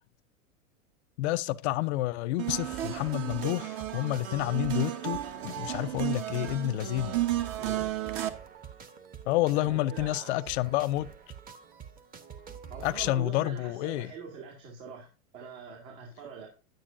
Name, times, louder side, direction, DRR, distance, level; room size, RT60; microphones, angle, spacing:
voice 1, 1.2-7.2 9.3-11.1 12.8-14.1, left 15 dB, 50° left, 0.6 m, -29 dB
sound 1, 2.4-8.3, right 13 dB, 45° right, 1.1 m, -33 dB
sound 2, 2.5-13.1, right 8 dB, 20° right, 0.9 m, -47 dB
voice 2, 7.6-7.9 9.5-10.5 12.7-16.5, right 5 dB, 65° right, 2.8 m, -44 dB
9.3 x 9.0 x 2.6 m
hypercardioid pair, 115°, 43 cm